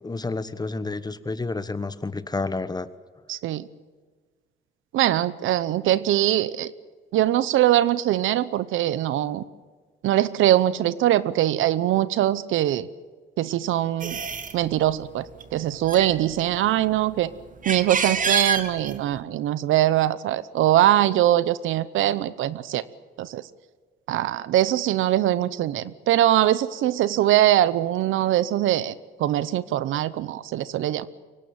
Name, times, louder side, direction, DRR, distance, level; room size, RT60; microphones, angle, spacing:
voice 1, 0.0-2.9, left 3 dB, 20° left, 14 dB, 1.2 m, -30 dB
voice 2, 3.3-3.7 4.9-6.7 7.1-9.4 10.0-12.9 13.4-14.2 14.5-15.3 15.5-17.3 17.7-22.8 23.2-23.4 24.1-28.9 29.2-31.1, right 13 dB, 80° right, 17 dB, 0.9 m, -22 dB
sound 1, 14.0-14.6 15.3-15.5 15.7-16.9 17.4-19.2, right 5 dB, 40° right, 1.9 m, -27 dB
24.0 x 17.5 x 8.9 m, 1.5 s
cardioid pair, 90°, 20 cm